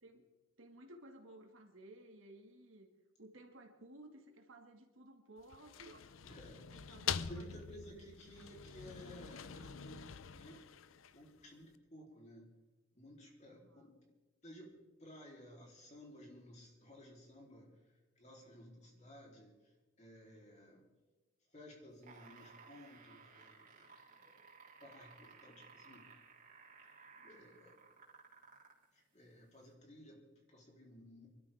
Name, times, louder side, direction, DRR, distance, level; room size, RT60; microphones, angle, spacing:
voice 1, 0.6-6.1 6.7-8.6 13.5-13.9, right 1 dB, 90° right, 3 dB, 2.4 m, -57 dB
sound 1, 5.4-11.4, left 8 dB, 85° left, 0.6 m, -45 dB
voice 2, 6.2-6.6 7.3-10.6 11.1-12.5 13.0-14.0 14.4-14.7 15.0-17.7 18.2-20.8 21.5-24.5 24.8-26.2 27.2-27.8 28.9-31.3, equal, 35° left, -1 dB, 3.8 m, -56 dB
sound 2, 21.9-28.8 29.7-29.8, right 4 dB, 45° right, 3.3 m, -59 dB
24.5 x 13.0 x 3.7 m, 1.2 s
head